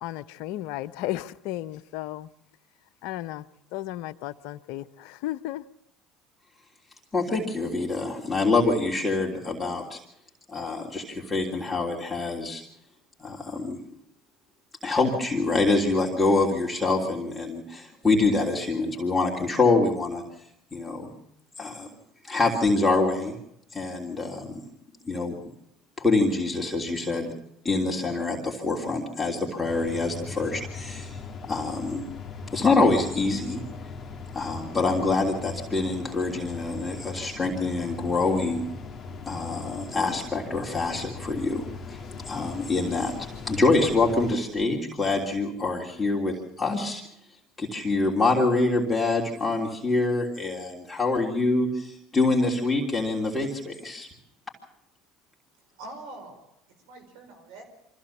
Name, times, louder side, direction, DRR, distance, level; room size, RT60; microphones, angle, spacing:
voice 1, 0.0-2.3 3.0-3.5 3.7-5.6, left 15 dB, 70° left, 0.7 m, -34 dB
voice 2, 6.6-10.0 10.5-12.6 13.2-13.8 14.8-21.2 21.6-21.9 22.2-23.4 23.7-24.6 25.0-25.3 26.0-27.3 27.6-32.1 32.5-33.6 34.3-38.7 39.2-42.0 42.2-54.1, left 3 dB, 15° left, 3.3 m, -26 dB
sound 1, 29.7-44.3, left 4 dB, 35° left, 2.1 m, -39 dB
voice 3, 55.6-56.4 56.7-57.6, right 2 dB, 75° right, 5.2 m, -44 dB
24.5 x 15.0 x 7.2 m
hypercardioid pair, 75°, 0 cm